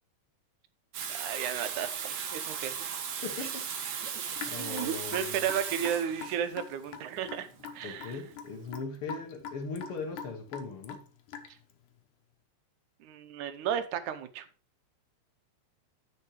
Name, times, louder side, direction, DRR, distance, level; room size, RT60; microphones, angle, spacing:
Water tap faucet / Sink (filling or washing), 0.9-8.6, right 7 dB, 60° right, 2.1 m, -37 dB
voice 1, 1.1-2.9 4.0-4.2 4.6-7.5 7.7-8.2 11.5-11.6 13.0-14.5, right 9 dB, 85° right, 2.4 m, -34 dB
voice 2, 3.2-4.0 4.4-5.4 7.8-11.0, left 4 dB, 55° left, 2.0 m, -39 dB
Raindrop / Drip, 4.4-11.7, left 6 dB, 90° left, 2.5 m, -43 dB
9.7 x 6.0 x 4.8 m
omnidirectional pair, 3.4 m